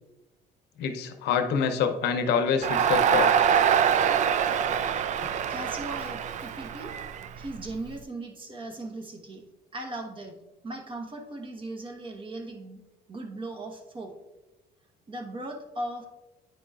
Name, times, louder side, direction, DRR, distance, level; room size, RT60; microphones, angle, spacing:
voice 1, 0.8-3.3, left 6 dB, 80° left, 7 dB, 0.7 m, -26 dB
Crowd, 2.6-7.8, right 8 dB, 45° right, 0.4 m, -24 dB
voice 2, 5.5-7.0 7.4-9.4 9.7-10.4 10.6-12.8 13.1-14.2 15.1-16.1, right 2 dB, 30° right, 3 dB, 1.1 m, -38 dB
9.3 x 5.0 x 2.3 m, 1.1 s
cardioid pair, 110°, 17 cm